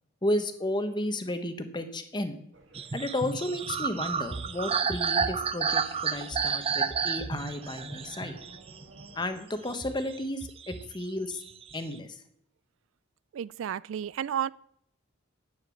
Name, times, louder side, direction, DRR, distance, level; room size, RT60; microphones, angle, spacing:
voice 1, 0.2-2.4 2.9-8.3 9.1-11.4 11.7-12.2, left 1 dB, 20° left, 1.1 m, -33 dB
sound 1, 2.5-9.3, right 1 dB, 65° right, 2.0 m, -55 dB
sound 2, 2.7-9.2 9.7-11.0 11.3-11.9, right 6 dB, 30° right, 0.6 m, -31 dB
voice 2, 13.3-14.5, right 9 dB, 80° right, 0.3 m, -32 dB
10.0 x 9.1 x 6.4 m
head